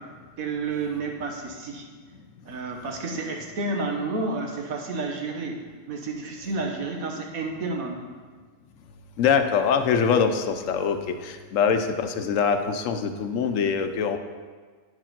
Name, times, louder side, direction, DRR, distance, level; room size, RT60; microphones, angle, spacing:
voice 1, 0.4-1.8 2.4-5.6 5.9-8.1, right 3 dB, 85° right, 1 dB, 1.6 m, -30 dB
voice 2, 9.2-14.2, left 6 dB, 70° left, 8 dB, 1.0 m, -23 dB
9.6 x 4.8 x 5.8 m, 1.5 s
omnidirectional pair, 1.4 m